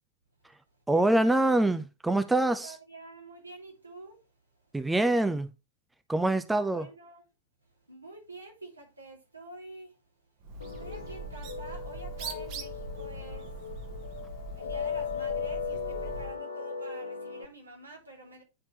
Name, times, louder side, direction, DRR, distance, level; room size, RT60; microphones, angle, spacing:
voice 1, 0.9-2.8 4.7-5.5 6.1-6.9, right 2 dB, 5° right, 0.6 m, -25 dB
voice 2, 2.6-4.2 6.5-7.2 7.9-9.9 10.6-13.5 14.5-18.4, right 1 dB, 80° right, 2.7 m, -47 dB
Bird, 10.4-16.4, right 3 dB, 45° right, 1.3 m, -41 dB
sound 1, 10.6-17.5, left 6 dB, 70° left, 0.6 m, -37 dB
9.7 x 4.4 x 3.1 m
figure-of-eight pair, 90°, 0 cm